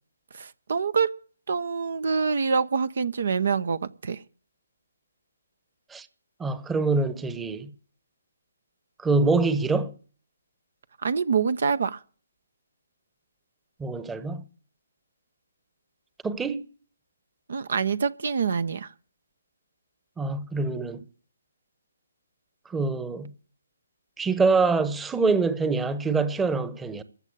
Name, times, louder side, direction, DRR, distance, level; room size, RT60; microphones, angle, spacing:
voice 1, 0.3-1.2 1.5-4.2 11.0-12.0 17.5-18.9, right 5 dB, 55° right, 0.7 m, -26 dB
voice 2, 6.4-7.7 9.0-9.9 13.8-14.4 16.2-16.6 20.2-21.0 22.7-23.3 24.2-27.0, right 4 dB, 10° right, 1.0 m, -25 dB
15.0 x 7.3 x 8.7 m
figure-of-eight pair, 135°, 0 cm